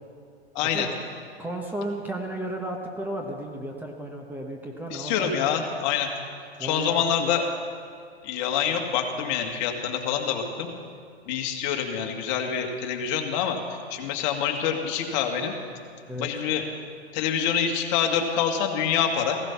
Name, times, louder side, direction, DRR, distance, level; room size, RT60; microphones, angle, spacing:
voice 1, 0.6-0.9 4.9-6.1 6.6-7.5 8.2-10.7 11.3-13.6 13.9-15.5 16.2-16.6 17.1-19.4, left 8 dB, 40° left, 3 dB, 1.9 m, -26 dB
voice 2, 1.4-5.5 6.6-7.3 16.1-16.3, right 1 dB, 5° right, 0 dB, 1.1 m, -34 dB
16.0 x 15.5 x 5.8 m, 2.2 s
hypercardioid pair, 125°, 33 cm